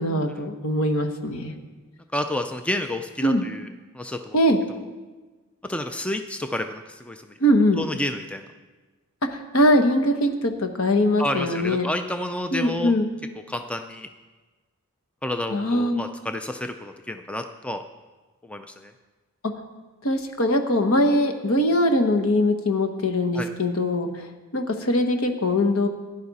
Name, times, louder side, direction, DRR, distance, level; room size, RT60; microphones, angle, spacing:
voice 1, 0.0-1.6 3.2-3.5 4.3-4.6 7.4-7.8 9.2-11.9 12.5-13.1 15.5-16.0 20.0-24.3 24.5-25.9, left 1 dB, 65° left, 6 dB, 1.2 m, -22 dB
voice 2, 2.1-3.7 3.9-4.4 5.7-7.2 7.8-8.4 11.2-12.9 13.5-14.1 15.2-17.8 18.4-18.9 23.3-23.5, left 1 dB, 5° left, 6 dB, 0.4 m, -30 dB
16.0 x 10.5 x 4.1 m, 1.3 s
head